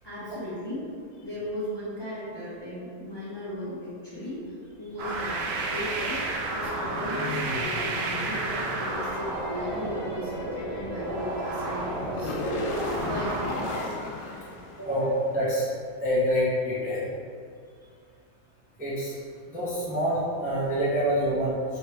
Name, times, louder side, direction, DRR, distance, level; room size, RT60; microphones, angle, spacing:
voice 1, 0.0-0.9 1.2-4.4 4.8-6.2 6.5-12.6 13.1-13.5 14.8-15.2, left 1 dB, 20° left, -10 dB, 0.9 m, -36 dB
sound 1, 5.0-13.8, right 2 dB, 65° right, 0.6 m, -32 dB
sound 2, 6.6-15.3, left 2 dB, 70° left, 0.9 m, -36 dB
voice 2, 14.8-15.7 16.0-17.0 18.8-19.1 19.5-21.6, equal, 10° right, -10 dB, 0.8 m, -26 dB
3.4 x 3.2 x 4.4 m, 2.2 s
omnidirectional pair, 1.5 m